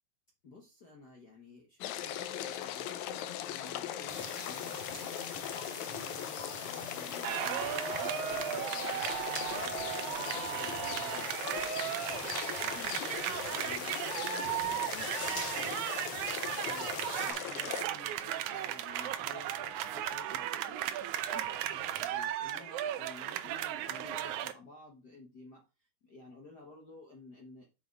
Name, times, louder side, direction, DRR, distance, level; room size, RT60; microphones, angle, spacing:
voice 1, 0.4-27.6, left 3 dB, 55° left, 0 dB, 1.2 m, -53 dB
sound 1, 1.8-17.8, left 11 dB, 75° left, 1.8 m, -40 dB
sound 2, 4.1-17.3, left 1 dB, 20° left, 2.7 m, -45 dB
sound 3, 7.2-24.5, right 11 dB, 75° right, 2.0 m, -36 dB
6.7 x 5.9 x 4.6 m, 0.29 s
omnidirectional pair, 3.7 m